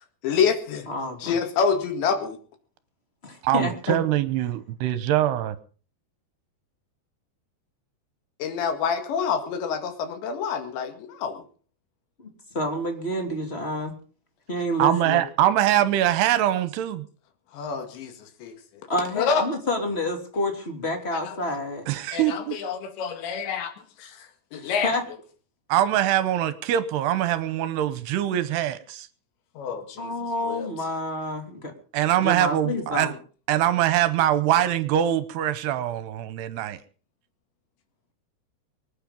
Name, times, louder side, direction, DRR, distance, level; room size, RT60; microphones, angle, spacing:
voice 1, 0.2-0.9 1.2-2.4 8.4-11.4 17.5-18.9 19.2-19.5 21.1-21.4 22.1-24.9 29.6-30.1 30.4-30.7, left 6 dB, 85° left, 7 dB, 4.3 m, -27 dB
voice 2, 0.9-1.3 3.2-4.0 12.2-12.3 12.5-14.0 14.5-15.2 18.9-21.9 24.5-25.0 30.0-31.7 32.2-33.1, left 1 dB, 15° left, 4 dB, 2.4 m, -28 dB
voice 3, 3.4-5.6 14.8-17.0 21.9-22.6 25.7-29.1 31.9-33.1 33.5-36.8, right 12 dB, 75° right, 14 dB, 2.9 m, -23 dB
24.0 x 9.2 x 5.3 m, 0.40 s
omnidirectional pair, 5.0 m